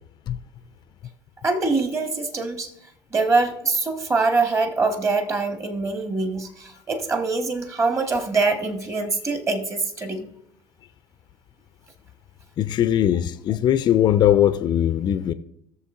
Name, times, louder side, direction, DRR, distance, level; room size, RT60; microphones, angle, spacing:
voice 1, 1.4-2.7 3.1-10.3, right 3 dB, 25° right, 1.4 m, -24 dB
voice 2, 12.6-15.3, left 11 dB, 40° left, 0.5 m, -20 dB
17.0 x 6.9 x 2.5 m
figure-of-eight pair, 65°, 11 cm